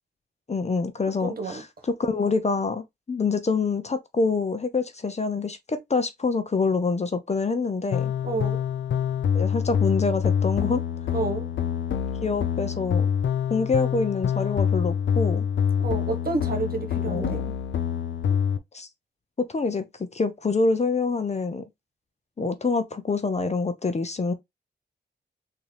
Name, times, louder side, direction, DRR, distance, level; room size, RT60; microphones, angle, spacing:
voice 1, 0.5-1.6 2.0-8.1 9.3-10.8 12.2-13.1 13.5-15.5 17.0-17.4 18.7-18.9 19.5-19.8 20.1-21.6 22.4-24.3, left 4 dB, 35° left, 0.7 m, -26 dB
voice 2, 1.2-1.6 8.2-8.6 11.1-11.5 15.8-17.4, right 3 dB, 50° right, 1.3 m, -29 dB
sound 1, 7.9-18.6, left 8 dB, 85° left, 0.5 m, -26 dB
3.6 x 2.9 x 3.3 m
cardioid pair, 70°, 19 cm